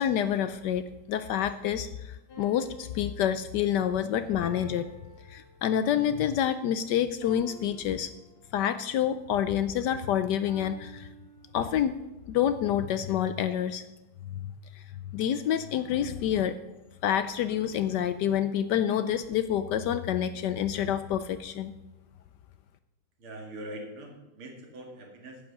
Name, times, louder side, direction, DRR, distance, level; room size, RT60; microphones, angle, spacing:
voice 1, 0.0-4.9 5.3-8.1 8.5-11.1 11.5-12.0 12.3-13.8 14.3-16.6 17.0-21.7, left 10 dB, 75° left, 12 dB, 1.0 m, -28 dB
sound 1, 2.3-6.0 7.2-8.8 10.5-12.0, right 1 dB, 90° left, 3.3 m, -53 dB
voice 2, 23.2-25.4, right 1 dB, 85° right, 1 dB, 2.9 m, -42 dB
10.0 x 8.5 x 6.5 m, 1.0 s
omnidirectional pair, 2.3 m